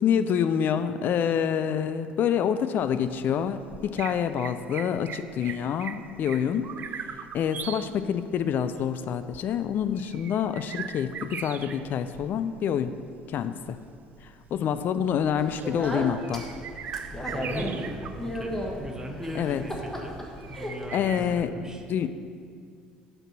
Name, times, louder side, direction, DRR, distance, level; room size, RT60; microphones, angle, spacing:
voice 1, 0.0-6.7 7.3-12.9 13.3-13.8 14.5-16.5 19.3-19.6 20.9-21.5 21.9-22.1, left 8 dB, 45° left, 11 dB, 0.3 m, -27 dB
sound 1, 2.8-21.2, right 7 dB, 45° right, 0.3 m, -41 dB
Speech, 15.4-21.4, equal, 10° left, 1.2 m, -35 dB
voice 2, 17.3-20.1 20.5-21.8, equal, 15° right, 2 dB, 1.0 m, -39 dB
6.5 x 4.6 x 5.9 m, 2.2 s
hypercardioid pair, 60°, 4 cm